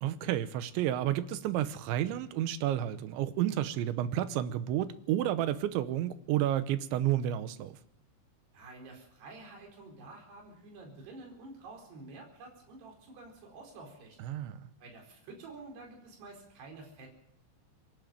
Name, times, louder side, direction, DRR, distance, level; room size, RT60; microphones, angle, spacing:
voice 1, 0.0-7.8 14.2-14.6, right 12 dB, 80° right, 3.3 m, -31 dB
voice 2, 8.5-14.2 14.8-17.1, right 3 dB, 60° right, 6.4 m, -49 dB
25.5 x 11.5 x 9.2 m
omnidirectional pair, 5.4 m